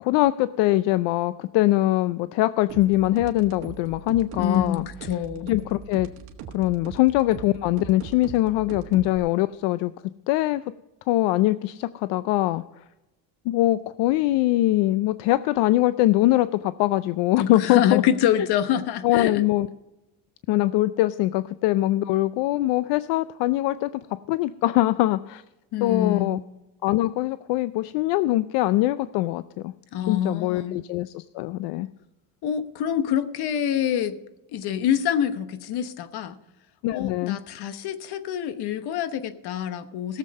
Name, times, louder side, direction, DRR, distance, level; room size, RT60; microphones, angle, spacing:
voice 1, 0.0-4.9 5.5-6.1 6.5-9.9 10.3-10.6 11.1-12.8 13.5-18.0 19.0-19.7 20.5-23.9 24.3-25.4 25.8-26.4 26.8-29.7 30.1-31.9 36.8-37.4, left 16 dB, 85° left, 14 dB, 0.5 m, -22 dB
sound 1, 2.7-9.2, right 8 dB, 65° right, 1.6 m, -40 dB
voice 2, 4.4-5.5 17.4-19.4 25.7-26.4 29.9-30.8 32.4-34.2 34.5-36.4 36.9-40.2, left 9 dB, 65° left, 11 dB, 1.1 m, -26 dB
17.5 x 7.4 x 5.4 m, 0.99 s
cardioid pair, 125°, 41 cm